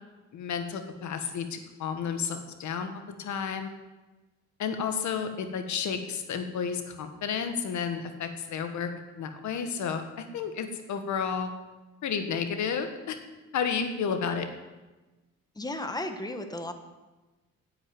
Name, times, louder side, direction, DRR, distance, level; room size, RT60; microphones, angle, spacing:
voice 1, 0.3-2.9 3.2-3.7 4.6-11.5 12.0-13.2 13.5-14.5, left 6 dB, 70° left, 7 dB, 1.5 m, -31 dB
voice 2, 15.5-16.7, left 1 dB, 15° left, 7 dB, 1.4 m, -34 dB
10.5 x 8.1 x 7.7 m, 1.2 s
cardioid pair, 90°, 30 cm